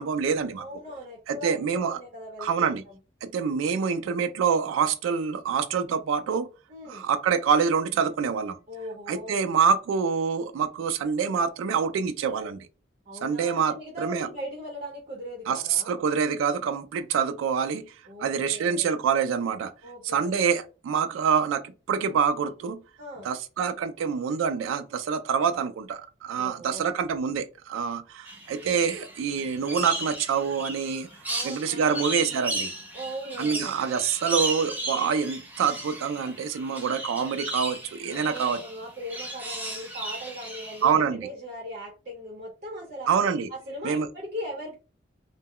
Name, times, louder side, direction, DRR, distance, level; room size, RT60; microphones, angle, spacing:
voice 1, 0.0-0.7 1.3-2.0 2.4-2.8 3.2-6.5 6.9-8.6 9.1-12.6 13.2-14.3 15.5-17.9 18.2-19.7 20.0-22.8 23.2-31.1 31.4-32.7 33.4-38.6 40.8-41.3 43.1-43.5 43.8-44.1, right 6 dB, 85° right, 0.3 m, -26 dB
voice 2, 0.6-2.8 6.7-7.1 8.7-9.4 13.1-16.0 18.1-18.9 19.8-20.4 23.0-23.3 26.4-26.8 31.3-32.4 32.9-33.8 38.1-43.1 43.5-44.8, equal, 40° right, 0.7 m, -39 dB
sound 1, 28.2-40.9, right 2 dB, 10° right, 0.4 m, -35 dB
2.2 x 2.0 x 3.5 m
head